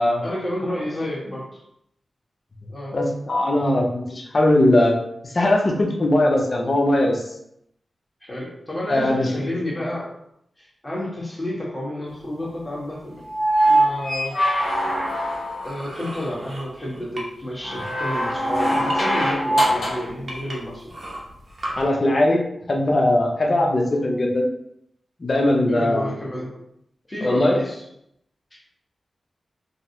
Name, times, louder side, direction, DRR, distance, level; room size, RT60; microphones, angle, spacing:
voice 1, 0.2-1.6 2.7-3.0 8.2-10.1 10.6-13.2 13.6-14.4 15.6-20.9 25.7-26.6 27.1-27.8 28.5-28.6, left 1 dB, 20° left, -5 dB, 1.3 m, -30 dB
voice 2, 2.9-5.0 5.2-7.2 8.9-9.5 21.8-24.4 25.2-26.1 27.2-27.6, left 1 dB, 50° left, 1 dB, 0.6 m, -20 dB
sound 1, 13.3-15.8 17.6-20.1 21.8-21.9, right 1 dB, 75° left, 0.9 m, -22 dB
sound 2, 14.3-17.5 17.8-19.0 19.6-19.7 20.3-21.7, right 1 dB, 55° right, 0.8 m, -37 dB
3.8 x 2.0 x 2.8 m, 0.76 s
cardioid pair, 60°, 0 cm